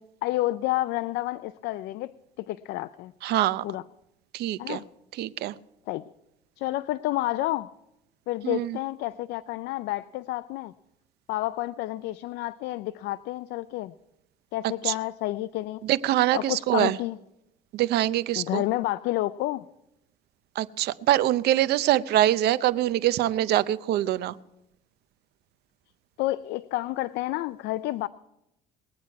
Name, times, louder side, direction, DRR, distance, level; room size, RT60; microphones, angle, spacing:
voice 1, 0.2-3.1 3.6-3.8 4.6-4.8 5.9-6.0 6.6-7.7 8.3-10.7 11.3-13.9 14.5-15.8 16.3-17.2 18.4-19.6 26.2-28.1, left 16 dB, 85° left, 15 dB, 0.4 m, -30 dB
voice 2, 3.2-3.6 4.3-4.8 5.2-5.5 8.4-8.8 14.8-14.9 15.8-17.0 17.7-18.6 20.6-24.4, right 13 dB, 75° right, 16 dB, 0.6 m, -24 dB
20.5 x 8.7 x 4.6 m, 0.85 s
cardioid pair, 110°, 17 cm